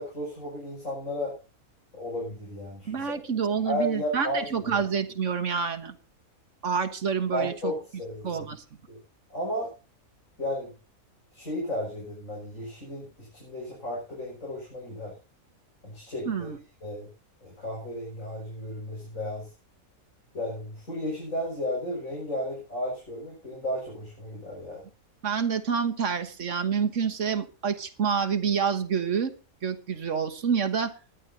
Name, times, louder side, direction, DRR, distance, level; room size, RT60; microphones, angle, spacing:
voice 1, 0.0-1.3 1.9-3.0 3.6-4.7 7.3-8.4 8.9-9.0 9.3-9.7 10.4-10.7 11.3-15.1 15.8-16.5 16.8-17.1 17.4-19.5 20.3-24.8, equal, 70° left, -4 dB, 6.6 m, -33 dB
voice 2, 2.8-5.9 6.6-7.7 8.2-8.6 16.2-16.6 25.2-29.3 29.6-30.9, right 6 dB, 60° right, 8 dB, 1.6 m, -28 dB
20.5 x 11.0 x 2.8 m, 0.33 s
omnidirectional pair, 1.5 m